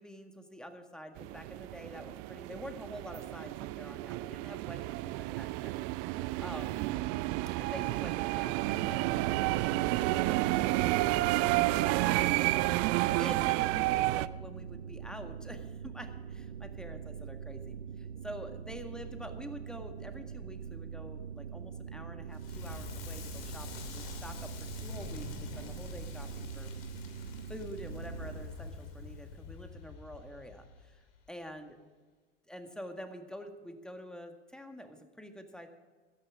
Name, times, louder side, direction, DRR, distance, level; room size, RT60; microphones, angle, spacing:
voice 1, 0.0-6.9 7.6-24.5 24.8-26.7 27.1-31.0 31.3-31.8 32.5-35.7, equal, ahead, 5 dB, 1.8 m, -47 dB
sound 1, 1.2-14.3, right 19 dB, 50° right, 0.5 m, -31 dB
sound 2, 8.6-28.5, right 7 dB, 85° right, 0.8 m, -43 dB
Crackle, 22.3-31.3, left 4 dB, 70° left, 2.8 m, -45 dB
16.0 x 13.0 x 3.7 m, 1.4 s
hypercardioid pair, 80°, 31 cm